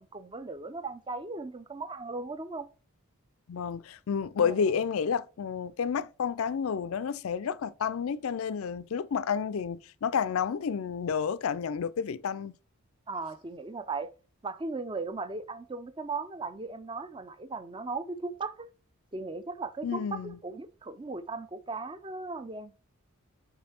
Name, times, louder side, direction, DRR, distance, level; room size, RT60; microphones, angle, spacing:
voice 1, 0.0-2.7 4.4-4.7 13.1-14.1 14.4-18.7 19.1-22.7, right 3 dB, 20° right, 0.4 m, -37 dB
voice 2, 3.5-12.5 19.8-20.4, left 6 dB, 70° left, 0.4 m, -30 dB
5.2 x 4.5 x 4.3 m
head